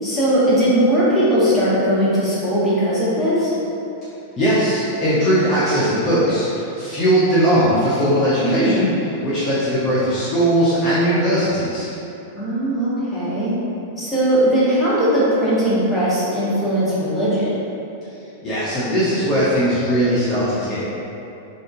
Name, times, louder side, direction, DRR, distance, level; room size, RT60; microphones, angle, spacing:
voice 1, 0.0-3.5 8.4-8.8 12.3-13.5 14.0-17.6, equal, 10° left, -10 dB, 1.3 m, -19 dB
voice 2, 4.4-8.9 9.2-11.9 18.4-20.8, equal, 25° left, -11 dB, 0.8 m, -19 dB
3.8 x 3.6 x 2.6 m, 2.9 s
figure-of-eight pair, 95°, 0 cm